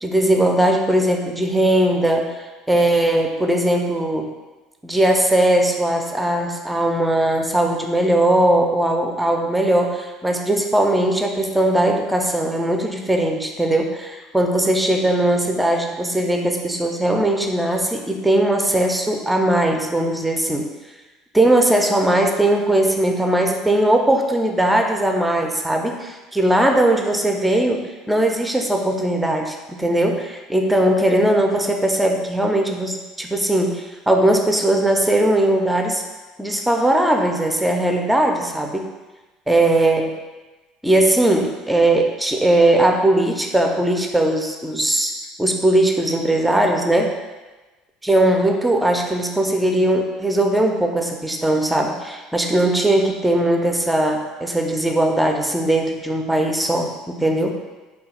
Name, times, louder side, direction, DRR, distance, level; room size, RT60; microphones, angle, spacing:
voice 1, 0.0-2.4 2.7-4.3 4.8-20.7 21.3-36.0 36.4-38.9 39.5-40.1 40.8-45.1 45.4-47.2 48.0-57.5, right 1 dB, 5° right, 2 dB, 0.4 m, -19 dB
3.0 x 2.3 x 4.2 m, 1.2 s
figure-of-eight pair, 65°, 0 cm